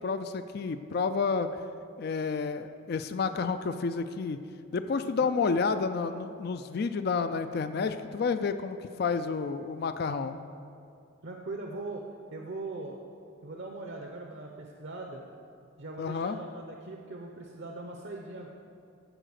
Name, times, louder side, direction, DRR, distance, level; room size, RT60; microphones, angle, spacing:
voice 1, 0.0-1.6 2.0-4.4 4.7-10.3 16.0-16.4, left 5 dB, 50° left, 10 dB, 0.3 m, -30 dB
voice 2, 11.2-12.0 12.3-13.0 13.4-15.2 15.8-18.5, right 2 dB, 55° right, 1 dB, 0.7 m, -40 dB
14.0 x 4.9 x 6.4 m, 2.5 s
head